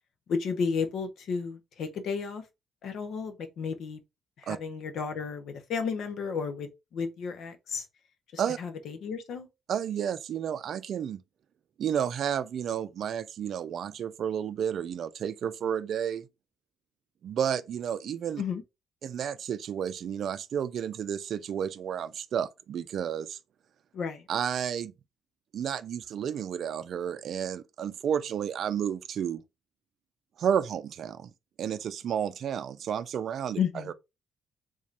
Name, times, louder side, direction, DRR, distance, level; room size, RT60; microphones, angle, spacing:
voice 1, 0.3-2.4 2.8-4.0 4.4-7.9 8.3-9.5 18.4-18.6 23.9-24.2 33.6-33.9, left 5 dB, 70° left, 0.9 m, -33 dB
voice 2, 9.7-11.2 11.8-16.3 17.2-18.4 19.0-23.4 24.3-24.9 25.5-29.4 30.4-31.3 31.6-33.9, right 8 dB, 65° right, 0.4 m, -31 dB
3.6 x 3.3 x 2.5 m
cardioid pair, 90°, 0 cm